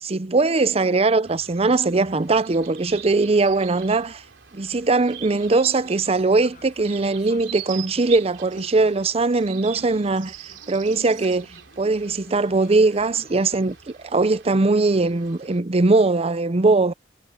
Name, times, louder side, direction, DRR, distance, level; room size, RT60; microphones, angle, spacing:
voice 1, 0.0-4.2 4.5-10.3 10.7-11.5 11.8-13.8 14.0-16.9, right 3 dB, 35° right, 0.6 m, -20 dB
sound 1, 1.2-15.6, right 10 dB, 75° right, 3.3 m, -42 dB
sound 2, 5.0-8.0 8.4-10.1 10.4-13.8, left 2 dB, 45° left, 7.2 m, -51 dB
head